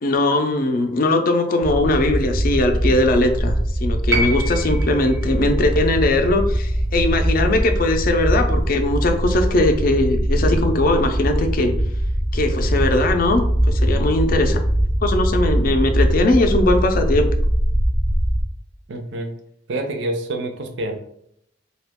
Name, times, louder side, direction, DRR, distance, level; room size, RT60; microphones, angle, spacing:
voice 1, 0.0-11.7 12.3-14.6 15.0-17.3, left 2 dB, 50° left, 6 dB, 0.4 m, -20 dB
sound 1, 1.6-18.4, equal, 15° right, 0.4 m, -21 dB
sound 2, 4.1-8.3 9.5-9.6, right 2 dB, 85° right, 0.9 m, -30 dB
voice 2, 18.9-19.3 19.7-21.0, right 1 dB, 70° right, 5 dB, 0.5 m, -27 dB
2.9 x 2.3 x 3.5 m, 0.74 s
head